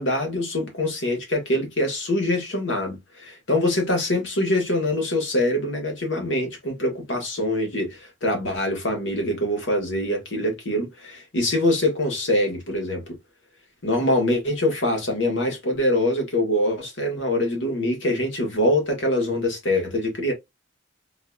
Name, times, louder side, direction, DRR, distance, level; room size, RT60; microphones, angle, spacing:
voice 1, 0.0-13.2 13.8-20.3, left 1 dB, 65° left, 1.4 m, -24 dB
3.9 x 2.6 x 2.3 m
head